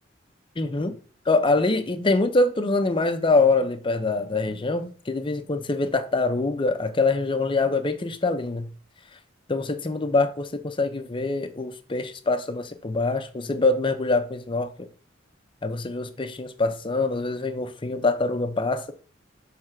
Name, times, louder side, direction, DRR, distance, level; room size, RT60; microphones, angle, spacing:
voice 1, 0.6-1.0 1.3-8.7 9.5-14.9 15.6-18.9, left 3 dB, 25° left, 0.5 m, -24 dB
6.0 x 3.2 x 4.8 m
head